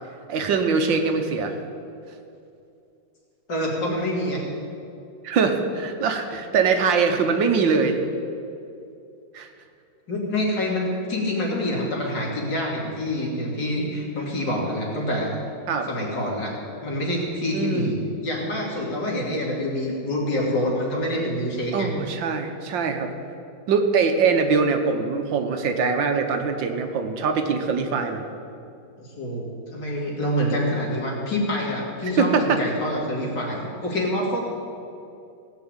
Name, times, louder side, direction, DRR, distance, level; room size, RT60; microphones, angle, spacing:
voice 1, 0.3-1.6 5.2-8.0 9.3-9.5 15.7-15.9 17.5-17.9 21.7-23.1 23.7-28.2 32.2-32.6, right 5 dB, 70° right, 6 dB, 1.7 m, -22 dB
voice 2, 3.5-4.4 10.1-15.3 15.9-18.0 18.2-21.9 29.0-34.4, left 1 dB, 60° left, -3 dB, 3.3 m, -26 dB
17.0 x 6.0 x 8.8 m, 2.6 s
omnidirectional pair, 2.1 m